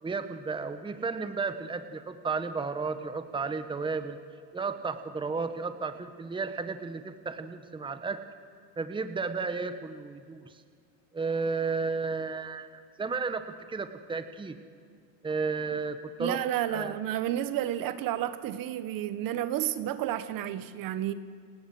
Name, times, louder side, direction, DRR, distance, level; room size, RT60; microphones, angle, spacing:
voice 1, 0.0-4.2 4.5-8.2 8.8-10.5 11.1-13.4 13.7-14.6 15.2-16.4 16.7-16.9, right 4 dB, 10° right, 1.2 m, -33 dB
voice 2, 16.2-21.1, right 12 dB, 45° right, 1.2 m, -31 dB
30.0 x 19.0 x 7.7 m
supercardioid pair, 120°, 48 cm